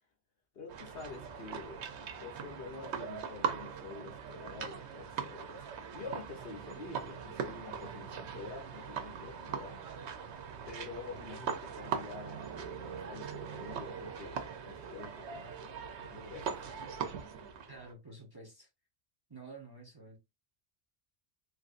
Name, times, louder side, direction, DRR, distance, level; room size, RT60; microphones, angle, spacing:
voice 1, 0.5-1.9 2.2-5.7 5.9-9.8 10.7-12.6 13.1-15.9 16.1-16.6, left 4 dB, 60° left, 1.2 m, -47 dB
sound 1, 0.7-17.9, right 7 dB, 80° right, 0.9 m, -41 dB
voice 2, 17.7-18.7 19.3-20.2, right 3 dB, 25° right, 0.7 m, -50 dB
3.2 x 2.6 x 2.5 m
omnidirectional pair, 1.1 m